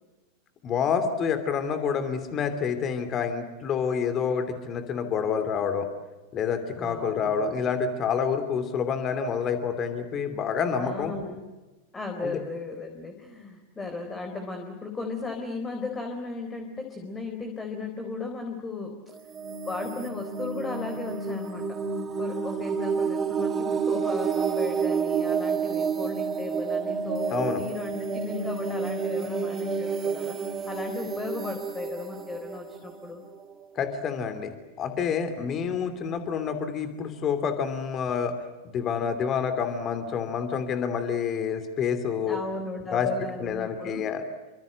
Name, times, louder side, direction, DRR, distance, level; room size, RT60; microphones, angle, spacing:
voice 1, 0.6-5.9 6.3-11.1 12.2-12.4 27.3-27.6 33.8-38.4 38.6-42.4 42.9-43.1 43.4-44.2, left 6 dB, 30° left, 9 dB, 2.9 m, -28 dB
voice 2, 6.8-7.6 10.8-11.4 11.9-19.1 19.6-21.8 22.2-33.2 42.2-44.1, left 3 dB, 15° left, 4 dB, 4.2 m, -36 dB
sound 1, 19.1-33.8, right 6 dB, 20° right, 2.0 m, -30 dB
28.5 x 26.0 x 7.8 m, 1.1 s
figure-of-eight pair, 90°, 0 cm